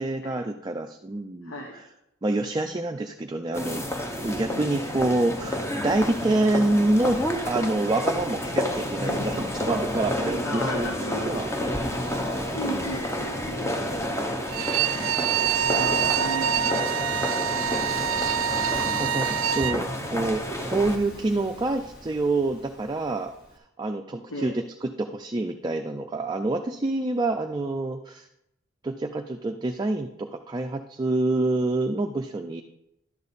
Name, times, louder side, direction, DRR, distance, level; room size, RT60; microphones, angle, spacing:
voice 1, 0.0-1.8 2.2-10.9 11.2-11.8 12.2-12.9 17.4-18.0 19.0-23.3 23.8-28.3 28.8-32.6, right 2 dB, 20° right, 4 dB, 0.4 m, -27 dB
voice 2, 1.4-1.8 10.4-11.6 12.5-13.7 14.6-15.0 15.7-16.6 24.2-24.6, right 1 dB, 75° left, 2 dB, 1.1 m, -35 dB
sound 1, 3.5-21.0, left 1 dB, 15° left, 0.7 m, -30 dB
Waves surf, 6.1-23.6, equal, 50° left, 1.7 m, -47 dB
Bowed string instrument, 14.5-19.8, right 9 dB, 80° right, 0.4 m, -26 dB
11.0 x 6.8 x 4.1 m, 0.84 s
head